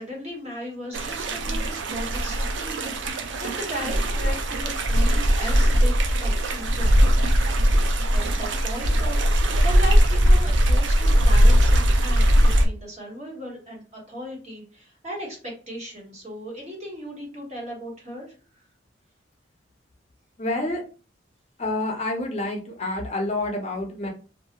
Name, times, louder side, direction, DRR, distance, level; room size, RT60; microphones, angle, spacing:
voice 1, 0.0-2.4 2.6-5.9 6.2-7.0 8.1-18.3, equal, 35° right, -2 dB, 1.1 m, -37 dB
sound 1, 0.9-12.7, equal, 80° right, 0.4 m, -20 dB
voice 2, 20.4-20.8 21.6-24.1, left 2 dB, 35° left, 1 dB, 0.5 m, -28 dB
2.5 x 2.3 x 2.8 m, 0.36 s
head